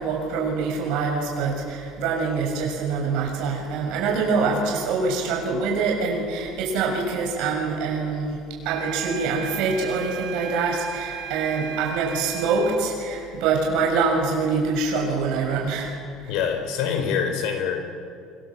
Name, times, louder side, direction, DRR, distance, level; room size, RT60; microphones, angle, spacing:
voice 1, 0.0-15.9 16.2-16.3, right 4 dB, 60° right, 0 dB, 6.6 m, -25 dB
sound 1, 8.6-12.9, right 9 dB, 85° right, 2.3 m, -36 dB
voice 2, 16.3-17.8, left 7 dB, 65° left, 6 dB, 4.4 m, -25 dB
25.0 x 25.0 x 7.4 m, 2.3 s
cardioid pair, 180°, 0 cm